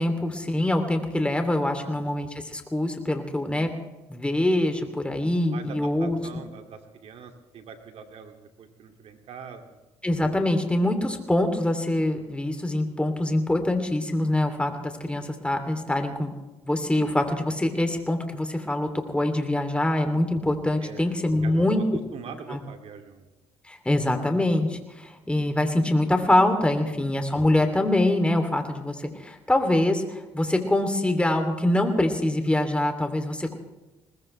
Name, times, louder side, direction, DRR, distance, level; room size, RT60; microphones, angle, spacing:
voice 1, 0.0-3.7 4.1-6.2 10.0-16.3 16.6-21.8 22.5-22.6 23.7-33.6, left 1 dB, 10° left, 5 dB, 3.0 m, -24 dB
voice 2, 5.5-9.8 13.3-13.4 20.8-21.1 21.4-21.8 22.1-23.2, right 6 dB, 65° right, 5 dB, 2.6 m, -43 dB
21.5 x 19.5 x 3.4 m, 1.1 s
supercardioid pair, 75°, 11 cm